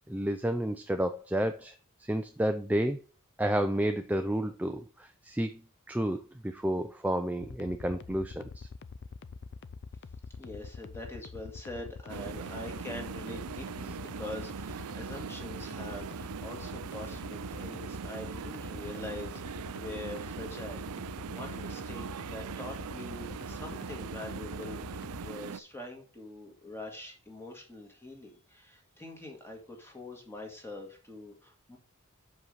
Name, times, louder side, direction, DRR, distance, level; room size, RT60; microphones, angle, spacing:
voice 1, 0.1-3.0 3.4-5.6 5.9-8.7, right 1 dB, 5° right, 7 dB, 0.4 m, -31 dB
sound 1, 7.4-25.3, left 4 dB, 50° left, 0.5 m, -44 dB
voice 2, 10.4-31.8, left 1 dB, 10° left, 1 dB, 1.9 m, -44 dB
sound 2, 12.1-25.6, right 7 dB, 80° right, 0.4 m, -41 dB
6.5 x 5.4 x 5.4 m, 0.36 s
head